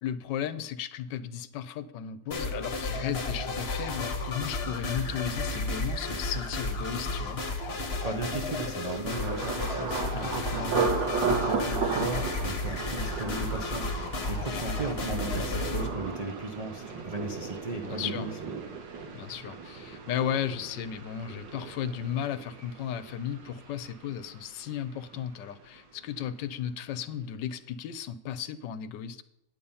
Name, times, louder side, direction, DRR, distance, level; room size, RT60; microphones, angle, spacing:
voice 1, 0.0-7.4 10.1-10.7 14.5-14.6 17.8-18.3 19.1-29.2, left 9 dB, 75° left, 13 dB, 1.3 m, -35 dB
sound 1, 2.3-15.9, left 2 dB, 35° left, 1.4 m, -33 dB
voice 2, 7.7-13.9 14.3-18.3, right 3 dB, 65° right, 4 dB, 0.3 m, -36 dB
Thunder, 9.1-24.9 25.1-25.8 26.2-26.4, right 4 dB, 80° right, 2.0 m, -35 dB
10.0 x 8.7 x 5.5 m, 0.87 s
omnidirectional pair, 2.0 m